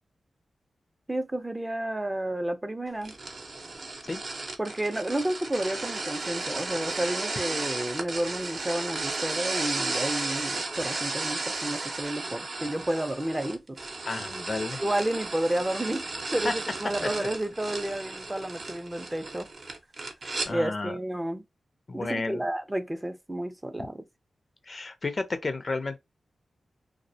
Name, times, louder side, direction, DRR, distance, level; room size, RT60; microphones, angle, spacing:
voice 1, 1.1-3.1 4.6-13.8 14.8-16.1 16.3-19.5 20.5-21.4 21.9-24.0, right 1 dB, 15° right, 0.4 m, -31 dB
sound 1, 3.0-20.5, right 3 dB, 60° right, 0.7 m, -34 dB
voice 2, 14.1-14.8 16.4-16.5 17.0-17.3 20.5-21.0 21.9-22.4 24.7-26.0, left 3 dB, 45° left, 0.4 m, -32 dB
2.3 x 2.0 x 2.6 m
cardioid pair, 55°, 0 cm